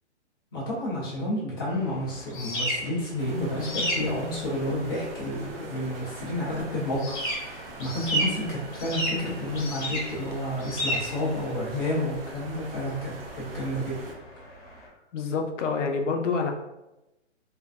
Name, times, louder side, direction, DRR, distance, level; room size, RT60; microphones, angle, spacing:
voice 1, 0.5-14.0, left 1 dB, 20° left, -7 dB, 0.4 m, -30 dB
sound 1, 1.7-14.9, equal, 45° left, 0.9 m, -34 dB
sound 2, 3.2-14.2, right 3 dB, 55° right, 0.5 m, -43 dB
voice 2, 15.1-16.5, left 4 dB, 85° left, 4 dB, 0.5 m, -27 dB
2.5 x 2.1 x 2.3 m, 0.96 s
hypercardioid pair, 155°, 36 cm